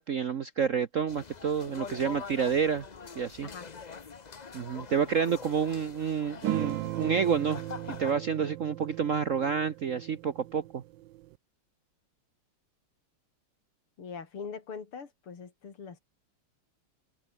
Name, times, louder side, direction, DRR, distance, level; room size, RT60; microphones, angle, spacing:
voice 1, 0.0-2.9 3.2-3.5 4.5-7.6 7.9-10.8, right 7 dB, 55° right, 0.9 m, -29 dB
sound 1, 1.1-8.1, left 5 dB, 55° left, 0.4 m, -44 dB
sound 2, 6.4-11.3, right 17 dB, 75° right, 1.1 m, -38 dB
voice 2, 14.0-16.0, left 5 dB, 80° left, 3.8 m, -42 dB
omnidirectional pair, 2.4 m